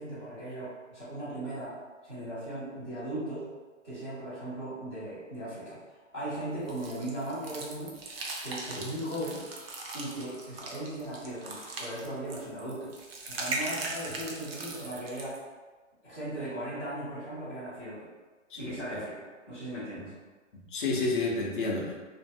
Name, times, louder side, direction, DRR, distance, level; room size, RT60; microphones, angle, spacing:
voice 1, 0.0-1.7 2.0-3.5 3.8-5.8 6.1-7.9 8.4-9.4 9.9-12.9 13.3-15.4 16.0-18.1 18.5-20.1, right 1 dB, 5° right, -20 dB, 0.4 m, -37 dB
sound 1, 6.7-15.4, right 2 dB, 50° right, 0.6 m, -39 dB
voice 2, 18.5-19.0 20.7-22.0, left 3 dB, 40° left, -2 dB, 0.5 m, -30 dB
2.5 x 2.5 x 2.6 m, 1.4 s
hypercardioid pair, 155°, 38 cm